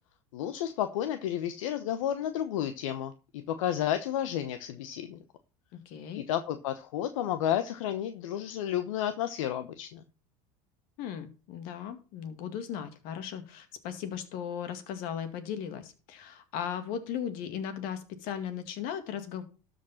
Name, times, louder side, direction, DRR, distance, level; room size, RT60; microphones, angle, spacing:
voice 1, 0.3-5.2 6.1-10.0, left 11 dB, 80° left, 9 dB, 1.0 m, -31 dB
voice 2, 5.7-6.2 11.0-19.4, left 8 dB, 60° left, 9 dB, 2.2 m, -37 dB
13.0 x 5.2 x 5.7 m, 0.34 s
supercardioid pair, 100°, 17 cm